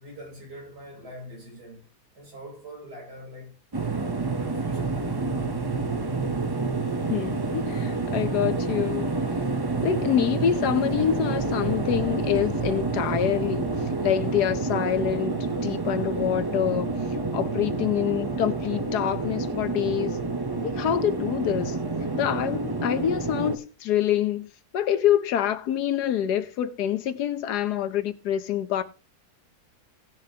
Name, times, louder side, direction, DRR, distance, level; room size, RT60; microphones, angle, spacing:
voice 1, 0.0-1.9 2.1-3.6 4.2-4.9 5.2-5.6, equal, 80° right, 4.7 m, -43 dB
sound 1, 3.7-23.6, right 3 dB, 30° right, 0.4 m, -28 dB
voice 2, 7.1-9.1 9.8-13.7 14.0-16.9 17.3-20.2 20.6-21.8 22.1-28.8, left 10 dB, 80° left, 1.4 m, -26 dB
17.5 x 6.8 x 2.8 m
omnidirectional pair, 1.7 m